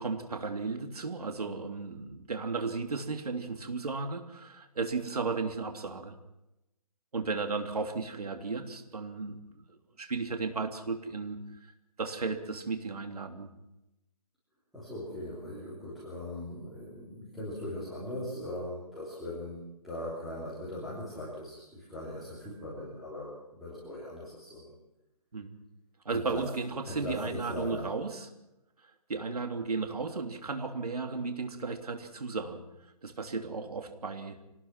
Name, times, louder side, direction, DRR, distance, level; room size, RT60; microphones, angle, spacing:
voice 1, 0.0-6.1 7.1-11.4 12.0-13.5 25.3-25.6 26.0-28.3 29.1-32.6 33.0-34.4, right 4 dB, 65° right, 5 dB, 3.3 m, -34 dB
voice 2, 14.7-24.7 26.1-26.5 26.8-27.9, left 1 dB, ahead, -12 dB, 3.2 m, -40 dB
25.5 x 19.0 x 6.0 m, 0.92 s
hypercardioid pair, 175°, 21 cm